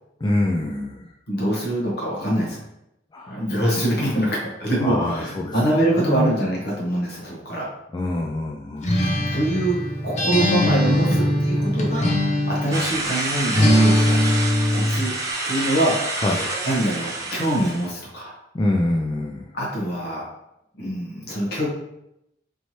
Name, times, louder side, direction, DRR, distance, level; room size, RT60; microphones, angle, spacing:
voice 1, 0.2-1.1 3.1-3.4 4.8-5.5 6.0-6.3 7.9-8.9 16.2-16.5 18.5-19.5, left 1 dB, 25° left, 0 dB, 0.3 m, -25 dB
voice 2, 1.3-2.6 3.3-7.7 8.8-9.8 10.0-12.1 12.5-14.3 14.7-15.1 15.4-18.4 19.5-20.2 20.7-21.7, right 1 dB, 60° left, -4 dB, 1.1 m, -24 dB
Acoustic guitar, 8.8-12.9 13.5-15.1, equal, 40° left, 0.7 m, -20 dB
sound 1, 12.7-17.9, right 2 dB, 20° right, 0.6 m, -28 dB
4.5 x 3.1 x 2.9 m, 0.84 s
head